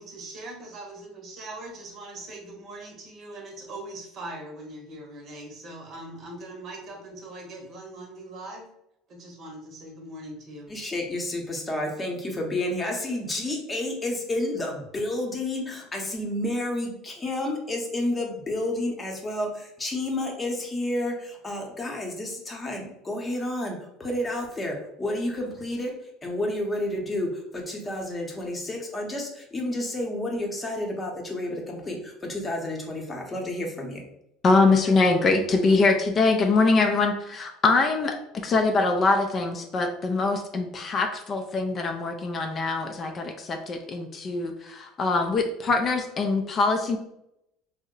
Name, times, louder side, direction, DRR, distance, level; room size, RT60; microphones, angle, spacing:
voice 1, 0.0-8.7 9.1-10.7, right 2 dB, 45° right, 1 dB, 0.8 m, -41 dB
voice 2, 10.7-25.9 26.2-34.0, left 1 dB, 20° left, 1 dB, 0.8 m, -30 dB
voice 3, 34.4-38.1 38.4-47.0, left 3 dB, 35° left, 4 dB, 0.4 m, -23 dB
2.7 x 2.0 x 3.7 m, 0.81 s
supercardioid pair, 95°, 0 cm